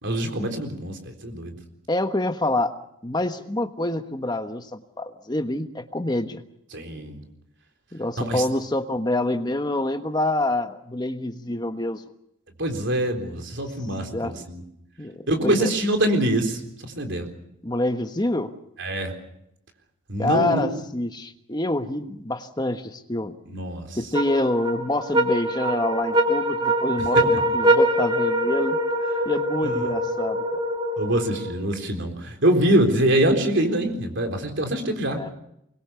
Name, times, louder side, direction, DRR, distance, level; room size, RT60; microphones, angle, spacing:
voice 1, 0.0-1.6 6.7-7.2 8.2-8.4 12.6-14.6 15.3-17.3 18.8-19.1 20.1-20.8 23.5-24.0 29.6-29.9 31.0-35.2, right 1 dB, 55° right, 4 dB, 3.9 m, -24 dB
voice 2, 1.9-2.7 3.0-6.4 7.9-12.0 14.1-14.4 15.0-15.7 17.6-18.5 20.2-23.4 24.0-28.8 29.2-30.6 35.2-35.3, left 1 dB, 20° left, 7 dB, 1.2 m, -26 dB
sound 1, 24.1-31.7, right 1 dB, 20° right, 2.5 m, -23 dB
24.0 x 21.5 x 7.0 m, 0.80 s
head